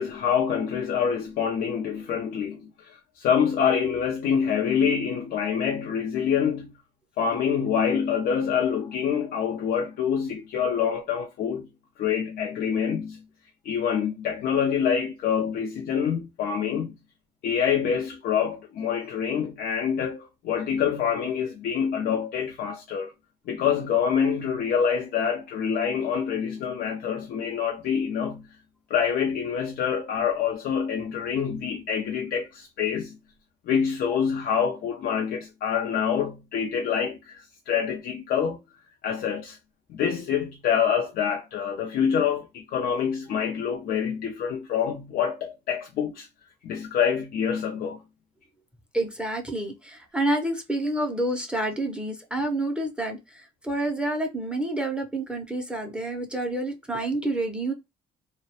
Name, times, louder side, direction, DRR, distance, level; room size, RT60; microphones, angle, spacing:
voice 1, 0.0-6.7 7.2-11.7 12.0-13.2 13.6-16.9 17.4-23.1 23.5-28.5 28.9-33.2 33.7-38.6 39.0-39.6 39.9-46.3 46.6-48.0, left 7 dB, 65° left, 0.4 m, -26 dB
voice 2, 48.9-57.7, right 1 dB, 5° right, 0.5 m, -28 dB
2.2 x 2.1 x 2.7 m
cardioid pair, 110°, 17 cm